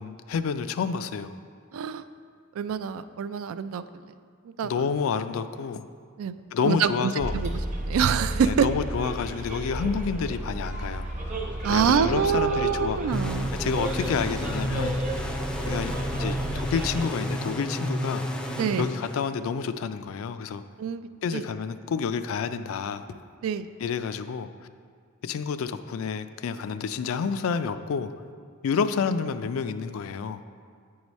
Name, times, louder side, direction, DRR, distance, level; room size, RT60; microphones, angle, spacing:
voice 1, 0.0-1.3 4.6-5.9 6.5-7.3 8.4-11.1 11.7-13.0 13.6-15.0 15.7-18.3 18.8-20.6 21.2-23.1 23.8-24.5 25.2-28.1 28.6-30.4, left 6 dB, 80° left, 11 dB, 0.3 m, -29 dB
voice 2, 1.7-2.0 2.6-3.8 4.4-4.9 6.2-7.5 7.9-8.7 11.6-13.5 18.6-18.9 20.8-21.4 23.4-23.7, right 7 dB, 80° right, 13 dB, 0.3 m, -26 dB
Bus, 7.2-17.0, right 1 dB, 40° right, 0.9 m, -32 dB
sound 1, 13.1-19.6, equal, 5° left, 0.4 m, -31 dB
8.9 x 4.8 x 4.1 m, 2.1 s
head